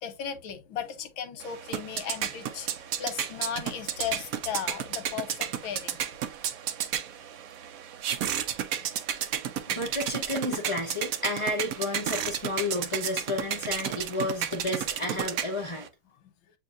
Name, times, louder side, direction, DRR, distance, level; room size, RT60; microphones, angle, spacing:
voice 1, 0.0-2.7 3.0-6.0, left 8 dB, 85° left, 1.6 m, -36 dB
sound 1, 1.4-15.9, right 9 dB, 75° right, 0.8 m, -33 dB
voice 2, 9.7-15.9, left 2 dB, 45° left, 0.4 m, -31 dB
7.8 x 2.7 x 2.5 m
omnidirectional pair, 2.1 m